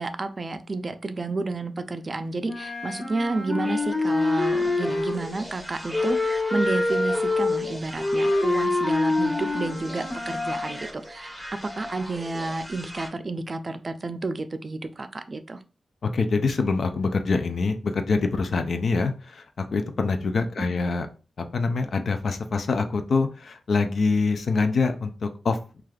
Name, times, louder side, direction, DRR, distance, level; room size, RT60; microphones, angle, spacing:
voice 1, 0.0-15.6 20.7-20.8, right 3 dB, 45° right, 9 dB, 0.4 m, -31 dB
Wind instrument woodwind instrument, 2.4-5.4 5.9-10.8, left 2 dB, 40° left, 1.1 m, -25 dB
sound 1, 3.5-13.1, equal, 5° left, 0.9 m, -40 dB
voice 2, 16.1-19.4 19.7-21.1 21.4-25.8, left 4 dB, 70° left, 7 dB, 0.4 m, -25 dB
3.2 x 2.4 x 2.3 m, 0.35 s
cardioid pair, 55°, 0 cm